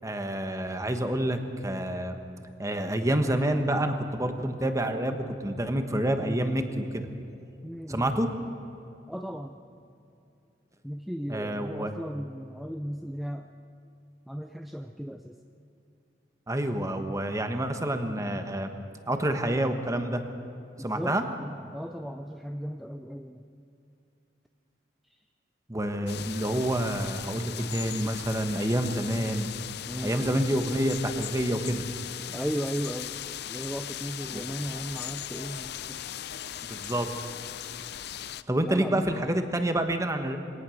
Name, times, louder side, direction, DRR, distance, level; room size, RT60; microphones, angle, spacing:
voice 1, 0.0-2.2 2.6-7.1 7.9-8.3 11.3-11.9 16.5-18.7 19.1-20.2 20.8-21.2 25.7-29.5 30.0-31.8 34.3-34.4 36.7-37.1 38.5-40.4, right 1 dB, 20° right, 6 dB, 1.3 m, -28 dB
voice 2, 7.6-8.2 9.1-9.6 10.8-13.5 14.3-15.4 20.8-23.4 29.9-30.3 32.3-33.1 33.5-36.0 38.6-39.3, equal, ahead, 4 dB, 0.6 m, -36 dB
sound 1, 26.1-38.4, left 10 dB, 60° left, 0.5 m, -38 dB
22.5 x 18.0 x 6.5 m, 2.7 s
head